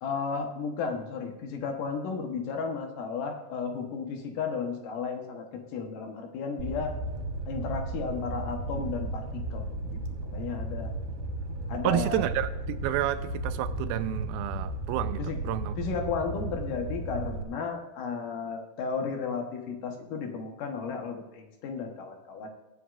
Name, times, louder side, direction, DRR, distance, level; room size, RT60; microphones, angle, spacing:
voice 1, 0.0-7.0 7.5-9.7 9.9-10.0 10.3-10.9 11.7-12.2 15.2-15.4 15.8-22.5, left 5 dB, 70° left, 3 dB, 2.7 m, -34 dB
Fire, 6.6-17.4, right 2 dB, 65° right, 2.3 m, -35 dB
voice 2, 11.8-15.7, right 12 dB, 90° right, 11 dB, 2.4 m, -30 dB
22.5 x 8.0 x 2.5 m, 1.0 s
omnidirectional pair, 4.1 m